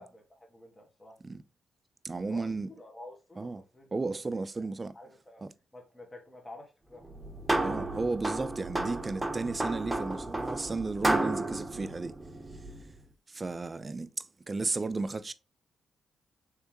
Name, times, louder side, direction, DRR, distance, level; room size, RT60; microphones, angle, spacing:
voice 1, 0.0-1.2 2.3-5.4 5.7-7.2, left 1 dB, 25° left, 1.4 m, -50 dB
voice 2, 2.0-2.7 3.4-3.6 3.9-4.9 5.4-5.5 7.6-12.1 13.3-15.3, right 3 dB, 35° right, 0.4 m, -34 dB
sound 1, 7.0-12.9, right 2 dB, 15° right, 1.0 m, -32 dB
3.6 x 3.4 x 3.0 m
hypercardioid pair, 45°, 0 cm